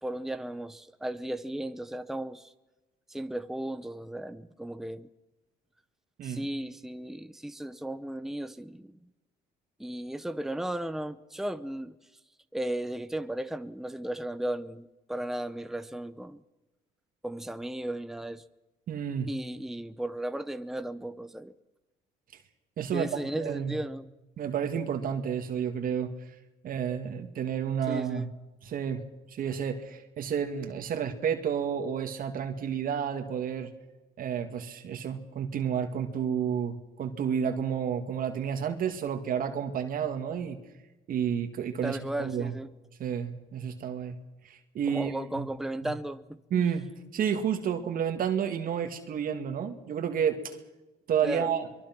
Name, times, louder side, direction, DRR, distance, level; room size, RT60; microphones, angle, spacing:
voice 1, 0.0-2.5 3.1-5.1 6.2-8.9 9.8-12.0 12.5-16.4 17.2-18.4 19.3-21.5 22.9-24.1 27.9-28.3 41.8-42.7 44.9-46.2 46.5-46.7 51.2-51.5, right 1 dB, ahead, 0.9 m, -35 dB
voice 2, 18.9-19.3 22.8-23.8 24.4-26.1 26.6-28.3 28.6-29.0 29.3-33.7 34.2-40.6 41.1-42.5 43.0-44.2 44.4-45.5 45.8-45.9 46.5-46.9 47.1-50.6 51.1-51.7, right 8 dB, 55° right, 2.2 m, -30 dB
23.5 x 23.0 x 6.1 m
cardioid pair, 110°, 17 cm